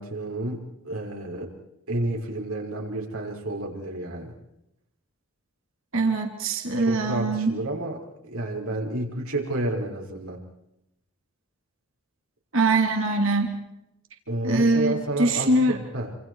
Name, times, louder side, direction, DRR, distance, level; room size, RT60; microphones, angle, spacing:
voice 1, 0.0-1.5 1.9-4.3 6.8-8.0 8.3-10.4 14.3-16.1, right 1 dB, 80° right, 0 dB, 5.8 m, -30 dB
voice 2, 5.9-7.5 12.5-13.5 14.4-15.8, right 2 dB, 65° right, 3 dB, 3.0 m, -23 dB
29.0 x 27.0 x 4.8 m, 0.84 s
head